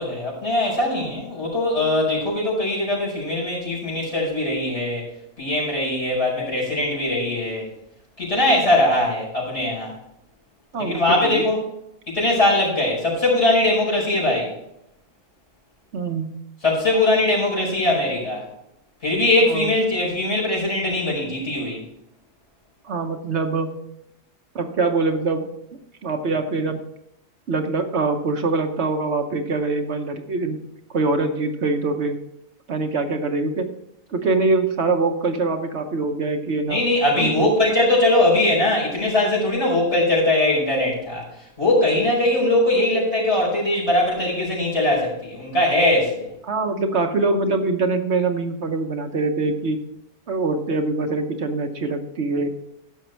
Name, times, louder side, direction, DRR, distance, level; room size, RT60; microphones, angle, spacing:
voice 1, 0.0-5.1 5.4-7.7 8.2-9.9 10.8-11.6 12.1-14.5 16.6-18.4 19.0-21.8 36.7-41.2 41.6-46.3, left 1 dB, 60° left, -5 dB, 5.7 m, -21 dB
voice 2, 10.7-11.5 15.9-16.3 19.5-19.7 22.8-23.7 24.5-25.5 26.0-26.8 27.5-30.6 30.9-32.2 32.7-33.7 34.1-36.8 37.2-37.5 46.5-49.8 50.3-52.5, right 3 dB, 60° right, 5 dB, 1.2 m, -23 dB
15.0 x 6.3 x 4.5 m, 0.80 s
omnidirectional pair, 1.4 m